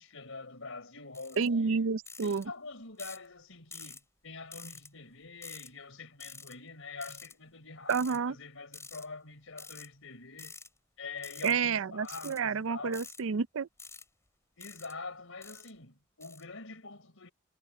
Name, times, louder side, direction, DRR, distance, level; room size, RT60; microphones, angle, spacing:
voice 1, 0.0-1.8 2.2-10.6 11.0-13.1 14.6-17.3, left 3 dB, 70° left, 4.1 m, -45 dB
sound 1, 1.1-1.5 2.1-2.4 3.0-3.3 3.7-4.0 4.5-4.9 5.4-5.7 6.2-6.5 7.0-7.3 7.9-8.2 8.7-9.1 9.6-9.9 10.4-10.7 11.2-11.5 12.0-12.4 12.9-13.2 13.8-14.0 14.6-14.9 15.4-15.7 16.2-16.4, left 4 dB, 15° left, 4.9 m, -48 dB
voice 2, 1.4-2.5 7.9-8.3 11.4-13.7, right 5 dB, 70° right, 0.5 m, -30 dB
head